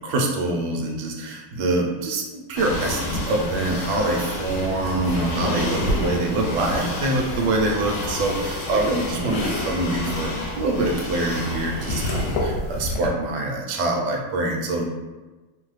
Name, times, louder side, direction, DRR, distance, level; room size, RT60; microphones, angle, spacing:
voice 1, 0.0-14.9, right 2 dB, 80° right, 1 dB, 1.2 m, -25 dB
sound 1, 2.6-13.1, left 1 dB, 70° left, 1.1 m, -28 dB
3.0 x 2.0 x 3.1 m, 1.2 s
omnidirectional pair, 1.8 m